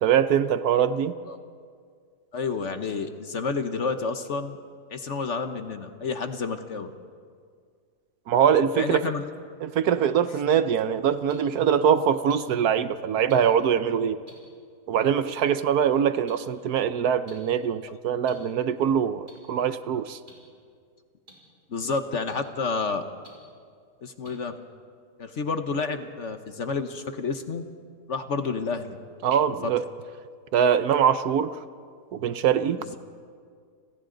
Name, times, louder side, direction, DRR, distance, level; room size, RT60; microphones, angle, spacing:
voice 1, 0.0-1.1 8.3-9.1 9.6-14.2 14.9-20.2 29.2-29.8 30.5-31.5 32.1-32.8, right 8 dB, 70° right, 12 dB, 1.2 m, -23 dB
voice 2, 2.3-4.6 4.9-6.9 8.8-9.3 21.7-23.0 24.0-24.6 25.2-27.6 28.1-29.0 29.6-29.7 32.9-33.0, left 4 dB, 50° left, 8 dB, 1.2 m, -30 dB
sound 1, 11.3-11.4 12.3-12.4 13.3-13.4 14.3-14.4 15.3-15.4 16.3-16.4 17.3-17.4 18.2-18.3 19.3-19.4 20.3-20.4 21.3-21.4 22.3-22.4 23.2-23.3 24.2-24.3, right 1 dB, 35° right, 5.9 m, -49 dB
30.0 x 27.0 x 3.9 m, 2.1 s
omnidirectional pair, 1.8 m